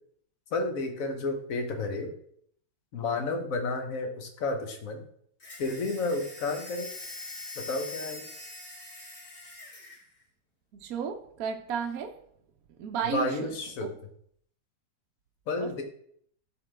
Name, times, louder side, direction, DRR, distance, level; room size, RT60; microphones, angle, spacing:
voice 1, 0.5-2.1 2.9-5.1 5.6-6.9 7.6-8.3 13.0-13.9 15.5-15.8, left 3 dB, 55° left, 1.3 m, -31 dB
sound 1, 5.4-10.0, left 2 dB, 35° left, 2.2 m, -43 dB
voice 2, 10.8-12.2 12.8-13.5 13.8-13.9 15.6-15.8, right 7 dB, 65° right, 1.0 m, -33 dB
11.5 x 3.9 x 3.3 m
omnidirectional pair, 1.9 m